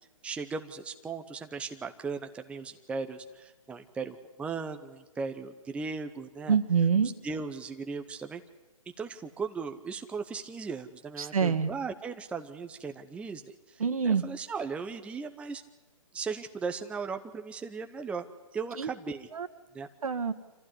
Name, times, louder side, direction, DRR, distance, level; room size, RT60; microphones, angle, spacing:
voice 1, 0.2-6.6 7.2-8.4 9.0-15.6 16.1-18.3 18.5-19.3 19.7-19.9, right 5 dB, 5° right, 6 dB, 0.8 m, -37 dB
voice 2, 6.5-7.1 11.2-11.7 13.8-14.2 18.8-18.9 19.3-19.5 20.0-20.3, right 6 dB, 75° right, 8 dB, 1.8 m, -26 dB
26.0 x 15.0 x 9.8 m, 1.2 s
hypercardioid pair, 140°, 18 cm